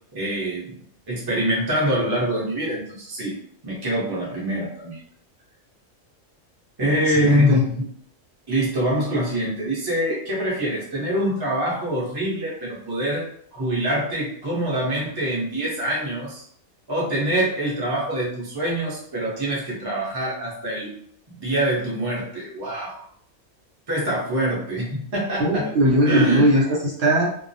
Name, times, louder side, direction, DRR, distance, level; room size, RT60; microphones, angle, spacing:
voice 1, 0.1-0.7 1.1-3.4 3.6-5.0 6.8-7.9 8.5-16.4 16.9-21.0 21.3-23.0 23.9-25.7 26.1-26.5, right 1 dB, 25° right, -6 dB, 0.6 m, -25 dB
voice 2, 7.1-7.6 25.4-27.2, equal, 60° right, -5 dB, 0.9 m, -19 dB
2.2 x 2.0 x 2.6 m, 0.64 s
omnidirectional pair, 1.3 m